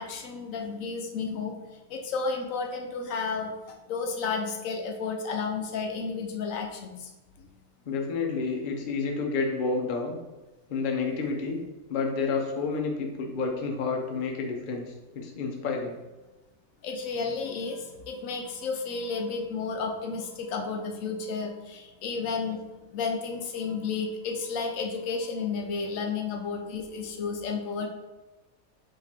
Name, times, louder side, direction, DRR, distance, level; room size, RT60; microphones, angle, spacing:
voice 1, 0.0-1.5 1.9-3.5 3.9-7.1 7.4-7.5 16.8-22.6 22.9-27.9, left 4 dB, 70° left, 2 dB, 1.0 m, -32 dB
voice 2, 7.9-10.1 10.7-11.6 11.9-14.8 15.1-16.0, left 4 dB, 50° left, 1 dB, 0.6 m, -29 dB
5.6 x 2.6 x 3.4 m, 1.1 s
omnidirectional pair, 1.5 m